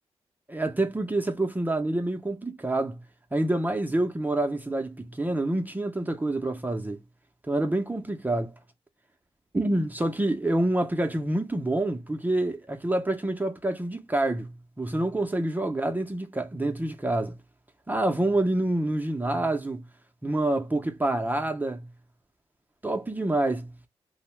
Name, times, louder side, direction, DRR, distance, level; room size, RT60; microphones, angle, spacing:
voice 1, 0.5-3.0 3.3-7.0 7.5-8.5 9.5-17.4 17.9-19.8 20.2-21.9 22.8-23.7, right 1 dB, 15° right, 0.5 m, -27 dB
2.6 x 2.0 x 3.0 m
cardioid pair, 80°, 11 cm